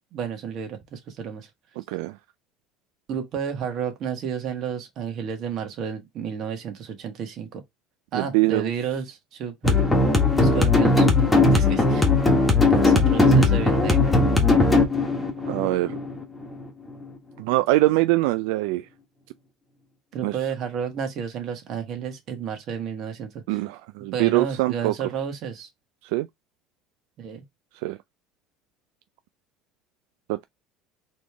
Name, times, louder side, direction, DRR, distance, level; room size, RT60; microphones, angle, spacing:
voice 1, 0.1-1.5 3.1-7.6 8.1-9.8 10.4-11.1 11.3-12.1 12.7-14.2 20.1-23.6 24.1-25.7 27.2-27.4, right 7 dB, 45° right, 1.6 m, -31 dB
voice 2, 1.8-2.2 8.1-8.7 15.5-15.9 17.4-18.9 20.2-20.4 23.5-24.9 26.0-26.3 27.8-28.0 30.3-30.4, right 18 dB, 85° right, 0.3 m, -23 dB
sound 1, 9.6-16.6, left 3 dB, 10° left, 1.4 m, -19 dB
4.2 x 3.2 x 3.4 m
cardioid pair, 140°, 0 cm